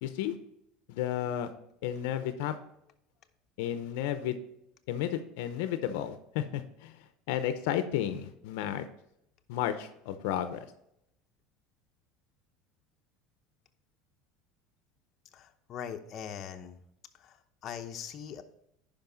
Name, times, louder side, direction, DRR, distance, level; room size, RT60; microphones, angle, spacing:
voice 1, 0.0-0.3 0.9-1.5 1.8-2.6 3.6-4.4 4.9-7.0 7.3-8.9 9.5-10.7, left 11 dB, 80° left, 10 dB, 0.7 m, -32 dB
voice 2, 15.3-16.8 17.1-18.4, left 8 dB, 40° left, 5 dB, 0.8 m, -41 dB
10.5 x 5.2 x 3.9 m, 0.77 s
supercardioid pair, 130°, 0 cm